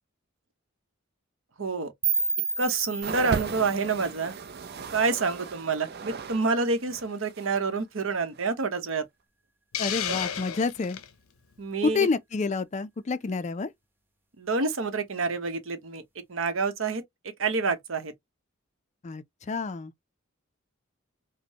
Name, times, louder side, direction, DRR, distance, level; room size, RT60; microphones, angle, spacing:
voice 1, 1.6-1.9 2.6-4.3 4.9-9.0 10.1-10.2 11.6-12.1 14.4-16.0 16.3-17.0 17.4-18.1, right 4 dB, 70° right, 0.9 m, -28 dB
sound 1, 2.0-5.0, right 4 dB, 10° right, 0.8 m, -31 dB
sound 2, 3.0-6.5 6.7-7.6 8.3-8.5, right 5 dB, 50° right, 0.6 m, -37 dB
Hiss, 9.7-11.1, left 9 dB, 85° left, 0.6 m, -32 dB
voice 2, 9.8-11.0 11.8-13.7 19.0-19.9, left 4 dB, 35° left, 0.4 m, -28 dB
5.1 x 2.1 x 2.8 m
head